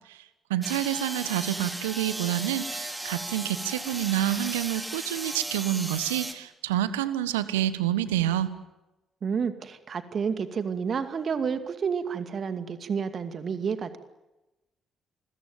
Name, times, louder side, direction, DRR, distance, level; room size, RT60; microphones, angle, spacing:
voice 1, 0.5-8.5, right 13 dB, 80° right, 14 dB, 1.5 m, -28 dB
sound 1, 0.6-6.3, right 1 dB, 15° right, 4.2 m, -36 dB
voice 2, 9.2-14.0, right 6 dB, 50° right, 10 dB, 2.4 m, -30 dB
28.5 x 22.0 x 9.3 m, 1.0 s
figure-of-eight pair, 45°, 0 cm